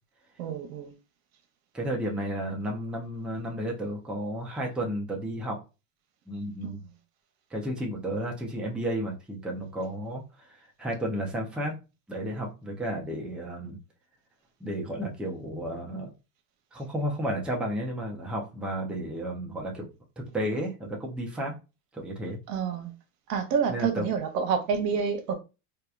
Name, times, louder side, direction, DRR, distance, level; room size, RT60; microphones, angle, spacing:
voice 1, 0.4-0.9 6.6-6.9 22.5-22.9 23.3-25.3, right 6 dB, 80° right, 0.8 m, -28 dB
voice 2, 1.7-5.6 6.3-6.8 7.5-11.8 12.1-13.8 14.6-16.1 16.7-19.9 20.2-21.5 21.9-22.4 23.7-24.1, right 1 dB, ahead, 0.5 m, -32 dB
2.9 x 2.2 x 2.3 m
supercardioid pair, 115°, 47 cm